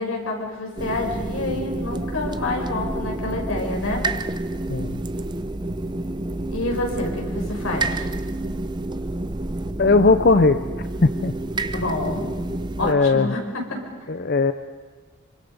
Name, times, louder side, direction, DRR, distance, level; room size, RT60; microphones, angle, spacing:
voice 1, 0.0-4.0 6.5-8.1 11.7-12.3 12.8-13.8, left 2 dB, 90° left, 1 dB, 5.4 m, -28 dB
sound 1, 0.8-12.9, right 2 dB, 20° right, 0.6 m, -29 dB
voice 2, 4.7-5.0 9.8-10.6 11.0-11.3 12.8-13.4 14.1-14.5, left 3 dB, 50° left, 10 dB, 0.6 m, -18 dB
27.0 x 25.0 x 5.4 m, 1.5 s
head